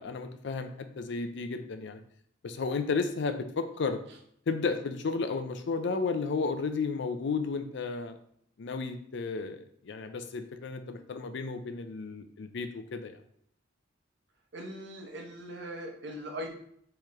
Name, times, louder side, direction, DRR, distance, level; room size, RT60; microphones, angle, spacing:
voice 1, 0.0-2.0 2.4-4.0 4.5-8.2 8.6-13.1, left 4 dB, 60° left, 8 dB, 0.4 m, -33 dB
voice 2, 14.5-16.5, equal, 60° right, 1 dB, 0.9 m, -40 dB
4.6 x 3.2 x 3.5 m, 0.67 s
head